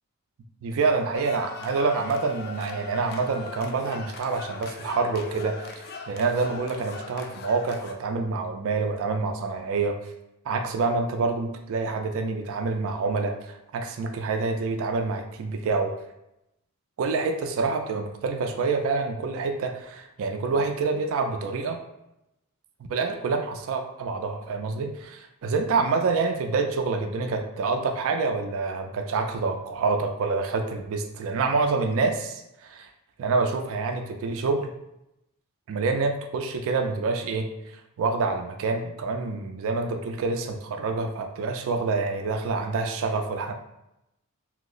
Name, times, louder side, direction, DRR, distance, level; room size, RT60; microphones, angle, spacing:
voice 1, 0.6-10.0 10.5-15.9 17.0-21.8 22.9-32.9 33.2-34.7 35.7-37.5 38.0-43.5, right 4 dB, 65° right, 5 dB, 0.3 m, -27 dB
sound 1, 1.1-7.9, left 4 dB, 45° left, 0.3 m, -40 dB
2.8 x 2.0 x 3.7 m, 0.87 s
head